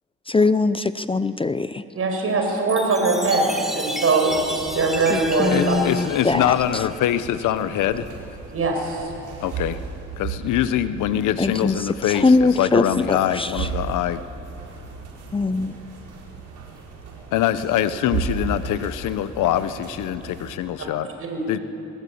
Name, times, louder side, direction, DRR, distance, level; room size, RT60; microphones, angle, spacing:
voice 1, 0.3-1.8 5.1-6.5 11.4-11.8 12.1-13.7 15.3-15.7, left 3 dB, 20° left, 13 dB, 0.6 m, -21 dB
voice 2, 1.9-4.3 4.7-5.8 8.5-9.1 21.2-21.4, right 3 dB, 50° right, 2 dB, 5.6 m, -21 dB
Chime, 2.7-7.3, equal, ahead, 2.5 m, -33 dB
sound 1, 4.3-20.6, right 6 dB, 80° right, 4.9 m, -36 dB
voice 3, 5.5-8.1 9.4-9.8 10.2-14.2 17.3-21.1 21.5-21.6, left 11 dB, 85° left, 13 dB, 1.1 m, -23 dB
21.5 x 21.0 x 8.7 m, 2.9 s
cardioid pair, 90°, 30 cm